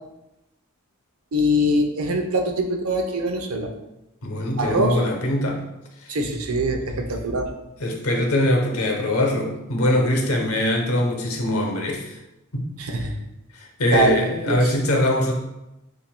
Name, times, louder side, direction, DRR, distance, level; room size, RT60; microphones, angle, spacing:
voice 1, 1.3-3.7 4.6-5.0 6.1-7.5 12.8-13.1 13.9-14.2 14.5-14.6, right 1 dB, 90° right, 3 dB, 0.6 m, -23 dB
voice 2, 4.2-5.6 6.0-6.1 6.8-6.9 7.2-7.3 7.8-12.2 12.5-12.7 13.0-13.1 13.5-15.3, left 1 dB, 85° left, 1 dB, 0.9 m, -22 dB
7.2 x 2.7 x 2.2 m, 0.92 s
head